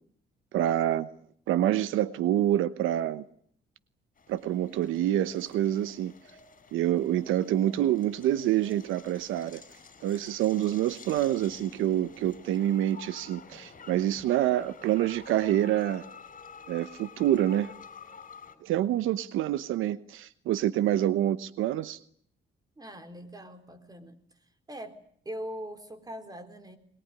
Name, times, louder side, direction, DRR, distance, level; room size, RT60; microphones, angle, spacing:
voice 1, 0.5-1.1 1.5-3.2 4.3-6.1 6.7-9.6 10.0-16.0 16.7-17.7 18.6-22.0, right 12 dB, 90° right, 15 dB, 1.1 m, -27 dB
sound 1, 4.2-18.6, left 5 dB, 40° left, 5.0 m, -50 dB
voice 2, 22.8-24.2 24.7-25.0 25.3-26.8, equal, 20° right, 10 dB, 4.0 m, -41 dB
22.5 x 21.5 x 9.8 m, 0.62 s
cardioid pair, 90°, 20 cm